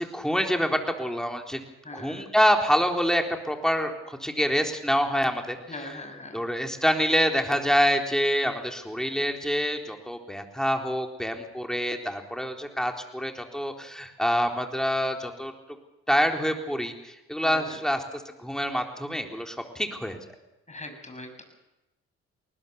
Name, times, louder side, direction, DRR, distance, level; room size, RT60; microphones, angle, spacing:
voice 1, 0.0-1.6 1.9-5.6 6.3-15.5 16.1-20.2, equal, ahead, 3 dB, 3.9 m, -26 dB
voice 2, 1.8-2.3 5.7-6.4 17.4-17.8 20.7-21.4, left 2 dB, 20° left, 5 dB, 6.7 m, -40 dB
21.5 x 19.5 x 7.1 m, 0.98 s
hypercardioid pair, 50°, 31 cm